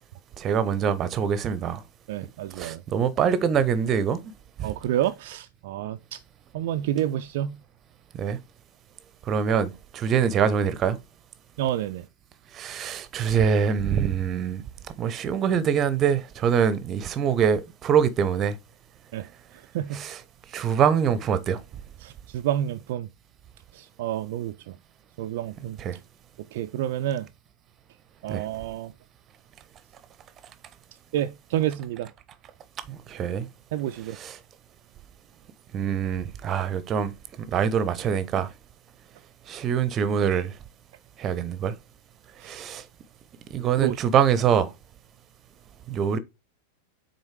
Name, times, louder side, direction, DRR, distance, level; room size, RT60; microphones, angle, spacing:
voice 1, 0.4-1.8 2.6-4.2 4.6-4.7 8.1-8.4 9.3-11.0 12.5-14.6 15.0-18.6 19.9-20.2 20.5-21.6 25.8-26.0 28.3-28.4 32.9-33.5 34.1-34.4 35.7-37.1 37.5-38.5 39.5-40.5 41.2-41.7 42.4-42.8 43.5-44.7 45.9-46.2, right 7 dB, 30° right, 0.7 m, -24 dB
voice 2, 2.1-2.8 4.6-6.2 6.5-7.6 11.6-12.1 19.1-19.3 19.7-20.0 22.0-23.1 23.7-24.8 25.2-25.8 26.5-27.3 28.2-28.9 31.1-32.1 33.7-34.2 42.4-42.7 43.8-44.0, right 12 dB, 50° right, 0.4 m, -29 dB
6.4 x 4.2 x 4.7 m
figure-of-eight pair, 90°, 0 cm